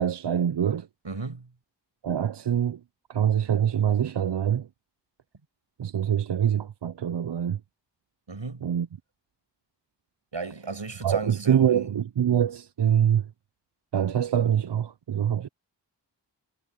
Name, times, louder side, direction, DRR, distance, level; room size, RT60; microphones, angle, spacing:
voice 1, 0.0-0.9 2.0-2.8 3.1-4.7 5.8-7.6 8.6-8.9 11.0-13.3 13.9-15.5, right 9 dB, 70° right, 0.6 m, -24 dB
voice 2, 1.0-1.5 8.3-8.7 10.3-11.9, right 4 dB, 85° right, 5.9 m, -35 dB
wide cardioid pair, 50°, 44 cm